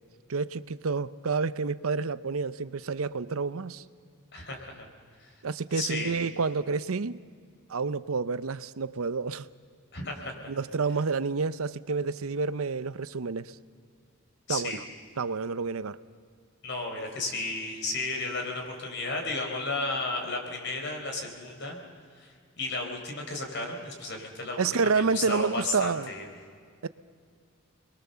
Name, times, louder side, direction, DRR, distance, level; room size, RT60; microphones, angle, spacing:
voice 1, 0.3-3.8 5.4-7.2 7.7-9.5 10.5-13.5 14.5-14.8 15.2-16.0 24.6-26.1 26.8-26.9, right 4 dB, 85° right, 15 dB, 0.7 m, -29 dB
voice 2, 4.3-4.9 5.2-5.3 5.7-6.2 9.9-10.5 14.5-14.8 16.6-21.8 22.2-26.3, left 2 dB, 55° left, 2 dB, 4.1 m, -34 dB
29.0 x 21.5 x 6.9 m, 2.2 s
head